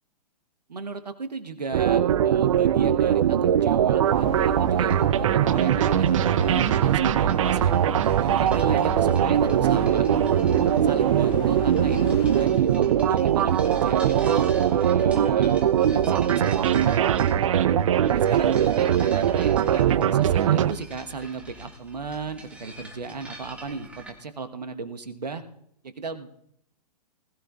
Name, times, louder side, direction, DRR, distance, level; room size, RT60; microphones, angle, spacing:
voice 1, 0.7-7.7 8.1-10.0 10.8-17.0 17.4-17.7 18.1-25.4 25.8-26.3, right 4 dB, 75° right, 8 dB, 1.2 m, -36 dB
sound 1, 1.7-20.7, right 10 dB, 50° right, 0.6 m, -21 dB
sound 2, 4.0-12.5, left 5 dB, 20° left, 0.8 m, -37 dB
sound 3, 4.9-24.1, right 1 dB, 5° right, 1.8 m, -45 dB
20.5 x 13.5 x 2.4 m, 0.74 s
figure-of-eight pair, 120°, 21 cm